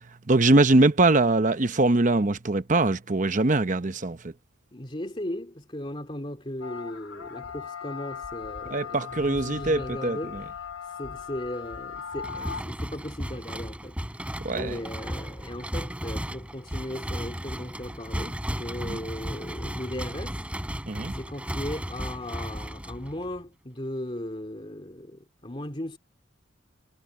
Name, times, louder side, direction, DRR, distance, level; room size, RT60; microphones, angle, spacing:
voice 1, 0.3-4.3 8.7-10.4 14.4-14.8 18.9-19.0 20.9-21.1, right 2 dB, 40° right, 0.9 m, -22 dB
voice 2, 4.7-20.5 21.1-26.0, left 1 dB, 25° left, 2.6 m, -37 dB
sound 1, 6.6-12.6, left 7 dB, 85° left, 2.5 m, -38 dB
sound 2, 12.2-23.4, equal, 5° right, 6.5 m, -35 dB
head